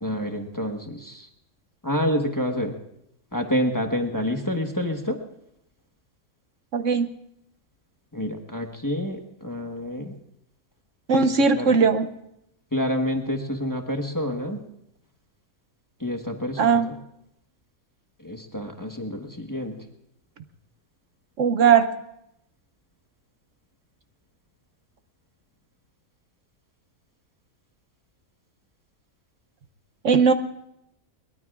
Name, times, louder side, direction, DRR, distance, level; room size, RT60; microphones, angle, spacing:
voice 1, 0.0-1.3 1.8-2.7 3.3-5.2 8.1-10.1 11.1-11.3 11.5-11.8 12.7-14.6 16.0-17.0 18.2-19.8, equal, 15° left, 3 dB, 1.2 m, -28 dB
voice 2, 6.7-7.1 11.1-12.1 16.6-16.9 21.4-21.9 30.0-30.3, right 6 dB, 65° right, 9 dB, 1.0 m, -19 dB
22.5 x 21.5 x 2.4 m, 0.82 s
omnidirectional pair, 1.5 m